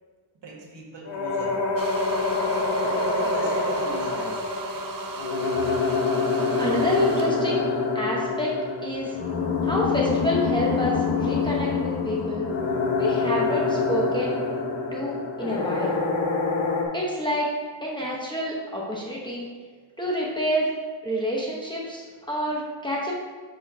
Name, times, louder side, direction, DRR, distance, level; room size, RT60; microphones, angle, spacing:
voice 1, 0.3-1.6 2.7-4.4 22.0-22.2, right 3 dB, 60° right, -3 dB, 1.7 m, -40 dB
sound 1, 1.1-16.9, left 4 dB, 65° left, 1.1 m, -26 dB
sound 2, 1.8-7.4, right 5 dB, 45° right, 0.6 m, -37 dB
voice 2, 6.6-7.6 7.9-8.5 8.8-9.1 9.6-12.5 13.0-14.4 14.9-16.0 16.9-17.5 17.8-19.5 20.0-20.7 21.0-23.1, equal, 10° left, -4 dB, 0.9 m, -28 dB
10.5 x 4.4 x 2.7 m, 1.5 s
wide cardioid pair, 165°, 48 cm